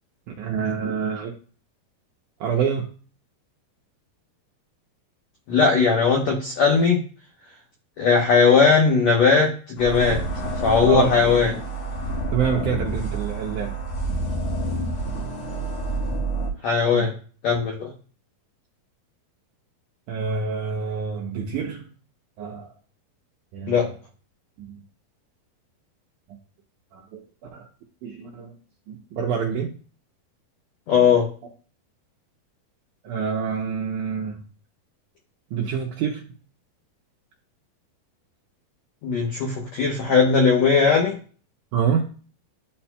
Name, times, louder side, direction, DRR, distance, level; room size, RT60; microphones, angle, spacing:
voice 1, 0.3-1.3 2.4-2.9 10.9-11.6 12.3-13.7 16.9-17.1 20.1-21.9 22.4-22.7 23.5-23.8 26.9-27.2 27.5-27.6 28.0-28.5 28.9-29.7 33.0-34.4 35.5-36.2 41.7-42.0, right 6 dB, 80° right, 0 dB, 1.8 m, -26 dB
voice 2, 5.5-7.0 8.0-10.2 10.6-11.5 16.6-17.1 17.4-17.9 23.7-23.8 30.9-31.3 39.0-41.1, left 5 dB, 80° left, -1 dB, 1.5 m, -18 dB
sound 1, 9.8-16.5, right 2 dB, 60° left, 1.8 m, -28 dB
11.5 x 4.3 x 2.2 m, 0.40 s
omnidirectional pair, 4.4 m